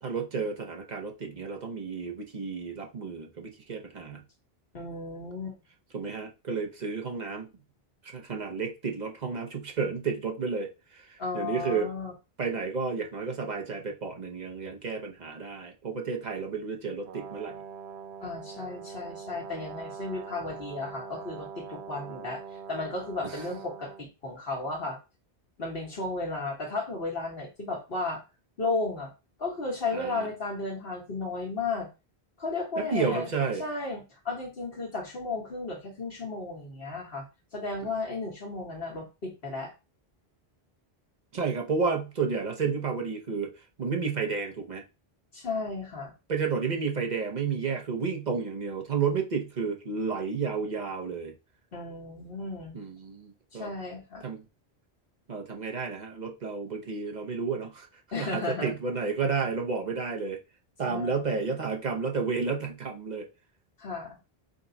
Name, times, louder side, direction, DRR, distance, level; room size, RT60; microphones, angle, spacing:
voice 1, 0.0-4.2 5.9-7.5 8.0-10.7 10.9-11.1 11.3-11.9 12.4-17.5 23.2-23.4 29.9-30.3 32.8-33.6 41.3-43.5 43.8-44.8 46.3-51.3 52.7-53.7 54.2-54.4 55.3-57.9 58.2-60.4 60.8-63.3, right 5 dB, 45° right, 0.9 m, -31 dB
voice 2, 4.7-5.6 11.2-12.1 18.2-22.4 22.7-25.0 25.6-28.2 28.6-29.1 29.4-31.9 32.4-33.3 33.6-37.2 37.5-39.7 45.3-46.1 51.7-52.8 53.5-54.2 58.1-58.7 60.9-61.4 63.8-64.2, left 3 dB, 65° left, 1.6 m, -34 dB
Brass instrument, 17.0-24.1, right 6 dB, 85° right, 0.9 m, -43 dB
5.2 x 2.3 x 3.9 m
omnidirectional pair, 1.1 m